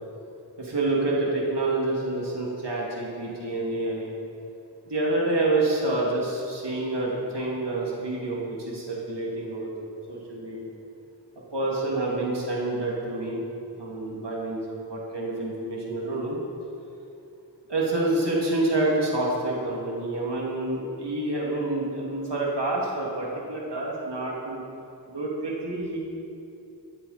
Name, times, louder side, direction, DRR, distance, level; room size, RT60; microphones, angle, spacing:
voice 1, 0.6-4.1 4.9-9.7 10.1-10.7 11.5-13.4 13.8-16.4 17.7-24.6 25.1-26.0, right 2 dB, 80° right, -4 dB, 2.7 m, -28 dB
14.0 x 14.0 x 4.3 m, 2.6 s
wide cardioid pair, 55°, 41 cm